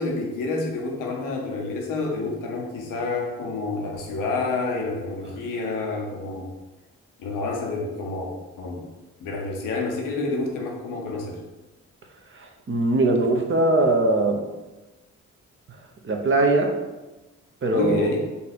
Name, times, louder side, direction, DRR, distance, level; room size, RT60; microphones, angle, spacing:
voice 1, 0.0-6.5 7.2-8.3 8.6-8.8 9.2-11.4 17.7-18.2, left 3 dB, 90° left, 0 dB, 0.8 m, -28 dB
voice 2, 12.7-14.4 16.0-16.7 17.6-18.1, right 2 dB, 40° right, 2 dB, 0.8 m, -20 dB
4.1 x 2.5 x 4.2 m, 1.1 s
supercardioid pair, 55°, 31 cm